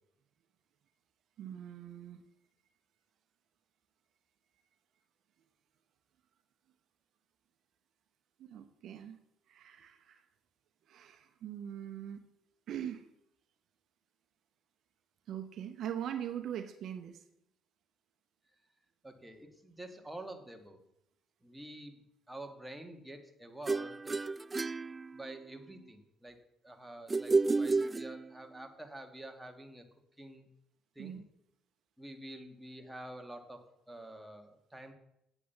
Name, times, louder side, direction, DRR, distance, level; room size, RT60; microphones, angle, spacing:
voice 1, 1.4-2.2 8.4-9.2 9.5-10.3 10.9-12.2 12.7-13.1 15.3-17.2 31.0-31.2, right 10 dB, 65° right, 8 dB, 0.8 m, -41 dB
voice 2, 19.0-20.8 21.4-24.2 25.1-26.4 26.6-29.8 30.2-30.5 31.0-31.2 32.0-34.9, right 1 dB, 10° right, 4 dB, 2.1 m, -48 dB
sound 1, 23.7-25.6 27.1-28.6, right 3 dB, 25° right, 0.3 m, -31 dB
9.0 x 8.2 x 7.1 m, 0.79 s
hypercardioid pair, 60°, 0 cm